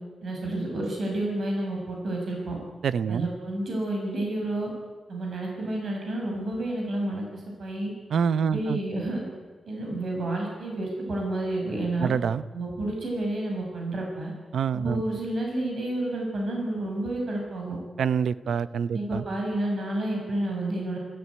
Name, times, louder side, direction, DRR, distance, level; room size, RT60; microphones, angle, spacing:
voice 1, 0.2-2.6 3.1-4.7 5.1-7.9 8.4-9.2 9.7-12.1 12.5-14.3 14.8-17.8 18.9-21.0, right 1 dB, 60° right, 0 dB, 6.5 m, -30 dB
voice 2, 2.8-3.3 8.1-8.8 12.0-12.4 14.5-15.0 18.0-19.2, right 7 dB, 85° right, 15 dB, 0.7 m, -26 dB
27.5 x 14.5 x 9.7 m, 1.4 s
wide cardioid pair, 115°, 0 cm